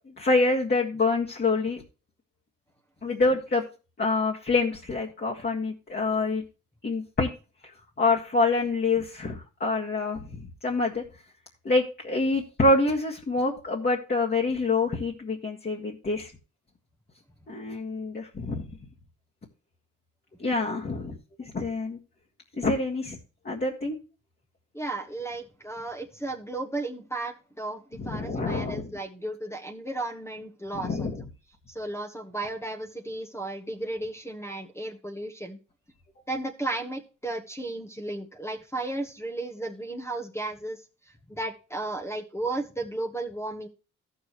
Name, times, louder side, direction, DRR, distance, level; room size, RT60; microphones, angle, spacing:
voice 1, 0.2-1.8 3.0-3.6 4.0-6.4 6.8-7.3 8.0-11.0 11.6-16.3 17.5-18.7 20.4-22.0 22.5-23.2 23.5-24.0 28.0-28.9 30.8-31.2, left 3 dB, 30° left, -2 dB, 1.8 m, -26 dB
voice 2, 24.7-31.1 31.7-35.6 36.3-40.8 41.3-43.7, right 2 dB, 10° left, 3 dB, 1.3 m, -34 dB
14.0 x 6.5 x 3.1 m, 0.33 s
cardioid pair, 90°, 30 cm